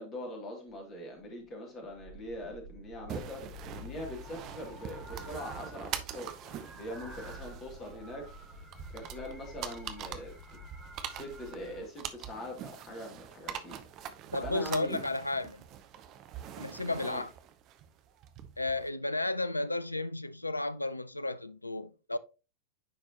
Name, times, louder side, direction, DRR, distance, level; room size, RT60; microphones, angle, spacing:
voice 1, 0.0-3.4 3.8-8.3 8.9-10.3 11.1-13.8 14.4-15.0 17.0-17.2, left 1 dB, 30° left, 2.6 m, -42 dB
sound 1, 0.7-0.8 1.2-1.5 1.8-5.9 6.2-11.9, left 1 dB, ahead, 1.6 m, -49 dB
sound 2, 3.1-18.9, right 10 dB, 35° right, 0.7 m, -44 dB
voice 2, 14.3-15.6 16.6-17.3 18.6-22.2, left 2 dB, 85° left, 0.3 m, -33 dB
9.7 x 4.4 x 2.9 m
figure-of-eight pair, 90°, 0 cm